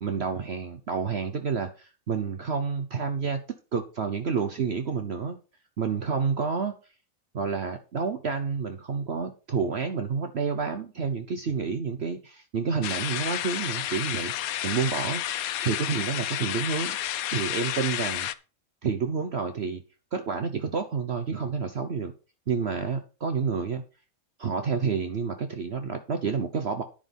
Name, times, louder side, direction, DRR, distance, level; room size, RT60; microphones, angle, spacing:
voice 1, 0.0-3.4 3.7-5.4 5.8-6.7 7.3-15.2 15.6-17.0 17.3-18.3 18.8-19.8 20.1-22.1 22.5-23.8 24.4-26.8, right 5 dB, 50° right, 7 dB, 1.1 m, -29 dB
sound 1, 12.8-18.3, left 12 dB, 80° left, 1.1 m, -31 dB
10.5 x 6.0 x 5.3 m, 0.34 s
omnidirectional pair, 1.5 m